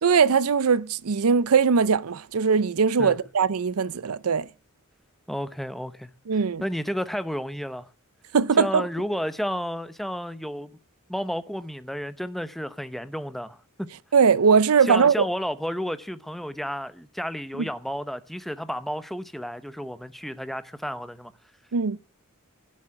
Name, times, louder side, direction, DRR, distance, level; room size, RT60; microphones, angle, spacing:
voice 1, 0.0-4.5 6.3-6.6 8.3-8.9 14.1-15.3 17.6-17.7 21.7-22.0, right 6 dB, 85° right, 0.6 m, -20 dB
voice 2, 5.3-6.1 6.6-7.9 8.6-10.7 11.1-13.6 14.8-21.3, equal, ahead, 0.7 m, -31 dB
16.0 x 7.5 x 7.6 m
head